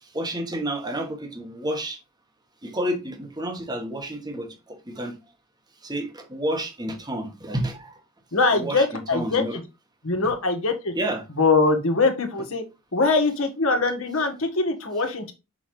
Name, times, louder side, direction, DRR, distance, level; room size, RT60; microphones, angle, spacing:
voice 1, 0.0-2.0 2.6-5.2 5.8-8.0 8.5-9.6 10.9-11.2, right 1 dB, 20° right, 1.2 m, -30 dB
voice 2, 8.3-9.6 10.0-10.9 11.4-12.6 12.9-15.3, left 3 dB, 70° left, 1.5 m, -22 dB
6.2 x 5.1 x 3.2 m
head